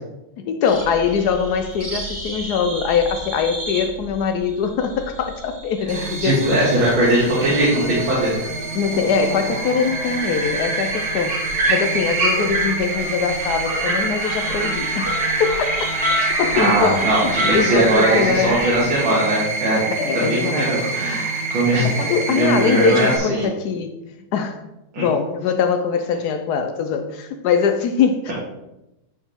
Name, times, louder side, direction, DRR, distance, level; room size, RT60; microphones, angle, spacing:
voice 1, 0.4-6.6 8.7-11.4 11.7-15.1 15.4-18.6 20.0-20.7 21.8-23.9 24.3-24.6 25.0-28.3, left 6 dB, 75° left, 7 dB, 0.9 m, -22 dB
sound 1, 0.7-18.8, right 1 dB, 30° right, 1.5 m, -27 dB
sound 2, 5.9-23.2, right 3 dB, 55° right, 1.2 m, -28 dB
voice 2, 5.9-8.4 16.5-19.8 20.1-21.9 22.3-23.5 24.9-25.0, right 1 dB, 75° right, -7 dB, 2.5 m, -20 dB
8.7 x 4.9 x 3.5 m, 0.93 s
omnidirectional pair, 2.2 m